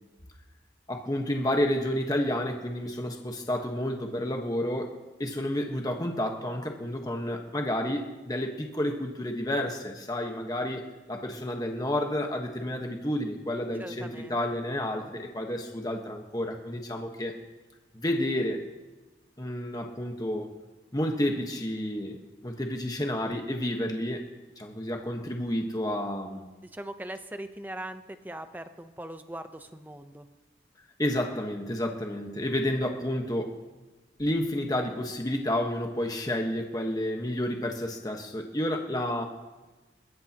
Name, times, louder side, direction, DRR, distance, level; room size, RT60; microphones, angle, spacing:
voice 1, 0.9-4.9 5.2-10.8 11.1-17.3 17.9-18.6 19.4-20.5 20.9-24.2 24.6-26.5 31.0-33.6 34.2-39.2, left 1 dB, 20° left, 2 dB, 1.3 m, -30 dB
voice 2, 13.8-14.4 26.6-30.3, right 1 dB, 10° right, 8 dB, 0.8 m, -40 dB
22.0 x 20.5 x 3.0 m, 1.2 s
head